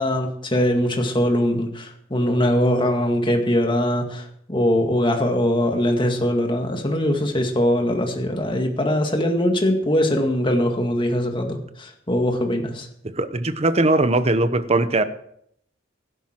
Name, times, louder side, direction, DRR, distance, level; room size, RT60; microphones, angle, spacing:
voice 1, 0.0-4.2 4.5-12.9, left 1 dB, 25° left, 3 dB, 1.9 m, -21 dB
voice 2, 13.1-15.0, right 2 dB, 35° right, 11 dB, 0.9 m, -20 dB
17.0 x 12.0 x 4.5 m, 0.70 s
head